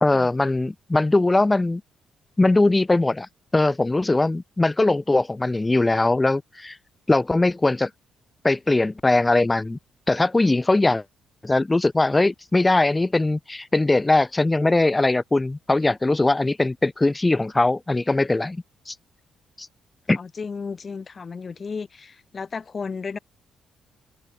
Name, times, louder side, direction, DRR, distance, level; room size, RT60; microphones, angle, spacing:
voice 1, 0.0-1.8 2.4-3.3 3.5-6.8 7.1-7.9 8.4-9.8 10.1-11.0 11.4-18.9 19.6-19.7 20.1-20.2, left 2 dB, 15° left, 0.9 m, -20 dB
voice 2, 20.2-23.2, left 5 dB, 35° left, 4.6 m, -33 dB
open air
cardioid pair, 90°, 0 cm